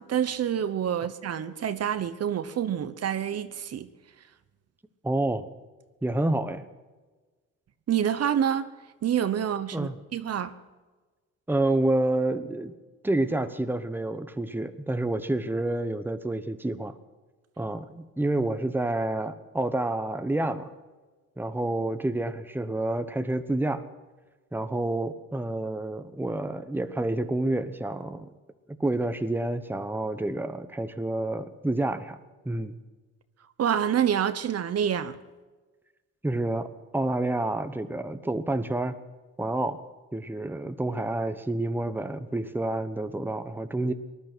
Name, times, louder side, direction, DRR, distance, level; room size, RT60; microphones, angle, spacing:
voice 1, 0.0-3.9 7.9-8.7 9.0-10.5 33.6-35.2, right 9 dB, 55° right, 1.0 m, -27 dB
voice 2, 5.0-5.5 6.0-6.6 9.7-10.0 11.5-12.7 13.0-16.9 17.6-20.7 21.4-23.8 24.5-28.3 28.8-32.2 32.4-32.8 36.2-36.7 36.9-39.0 39.4-39.8 40.1-43.9, right 2 dB, 5° right, 1.1 m, -28 dB
19.5 x 11.5 x 6.1 m
cardioid pair, 90°, 30 cm